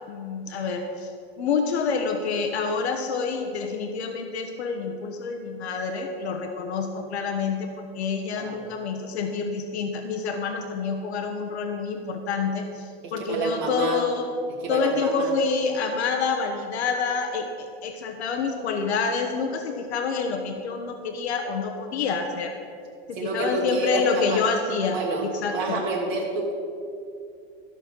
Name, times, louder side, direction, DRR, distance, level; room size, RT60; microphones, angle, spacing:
voice 1, 0.1-1.1 1.4-12.8 13.1-14.3 14.7-22.5 23.1-25.0 25.2-25.8, left 5 dB, 85° left, 4 dB, 1.2 m, -27 dB
voice 2, 8.3-8.7 13.0-14.0 14.6-15.3 23.1-24.4 24.9-26.5, right 3 dB, 50° right, -2 dB, 1.5 m, -28 dB
13.0 x 6.3 x 6.0 m, 2.5 s
supercardioid pair, 160°, 32 cm